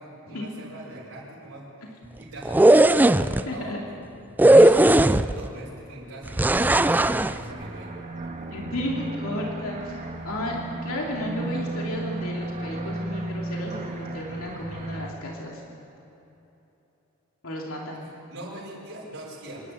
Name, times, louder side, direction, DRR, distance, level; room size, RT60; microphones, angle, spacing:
voice 1, 0.0-1.6 2.2-4.0 4.4-8.0 18.0-19.7, right 1 dB, 85° right, -8 dB, 5.8 m, -42 dB
sound 1, 2.4-3.4 4.4-5.5 6.4-7.3, right 1 dB, 10° right, 0.3 m, -16 dB
voice 2, 3.5-3.8 4.6-4.7 8.5-10.6 10.8-15.6 17.4-18.1, left 1 dB, 85° left, -2 dB, 2.7 m, -33 dB
sound 2, 6.5-15.1, right 2 dB, 40° right, 1.8 m, -34 dB
26.5 x 11.5 x 8.8 m, 3.0 s
head